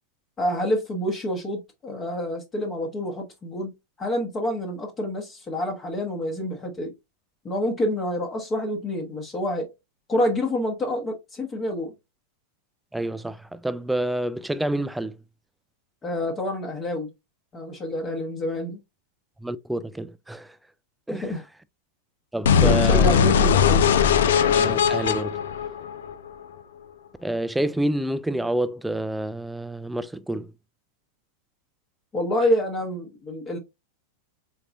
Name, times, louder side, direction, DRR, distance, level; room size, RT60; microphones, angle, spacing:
voice 1, 0.4-3.7 4.0-6.9 7.4-9.7 10.1-11.9 16.0-17.1 17.5-18.8 21.1-21.4 22.6-23.9 32.1-33.6, left 1 dB, 20° left, 1.0 m, -27 dB
voice 2, 12.9-15.2 19.4-20.5 21.1-21.3 22.3-23.1 24.5-25.4 27.2-30.5, right 1 dB, 5° right, 0.3 m, -28 dB
sound 1, 22.4-26.4, left 7 dB, 60° left, 0.4 m, -19 dB
4.4 x 3.9 x 2.5 m
figure-of-eight pair, 90°, 0 cm